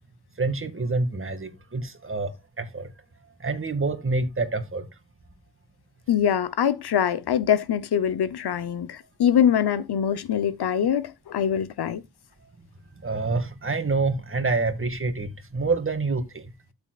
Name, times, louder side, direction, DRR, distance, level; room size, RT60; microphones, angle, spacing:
voice 1, 0.4-2.9 3.4-4.9 13.0-16.5, right 3 dB, 35° right, 2.0 m, -27 dB
voice 2, 6.1-12.0, left 9 dB, 80° left, 0.9 m, -23 dB
12.5 x 7.1 x 2.4 m
wide cardioid pair, 100°, 39 cm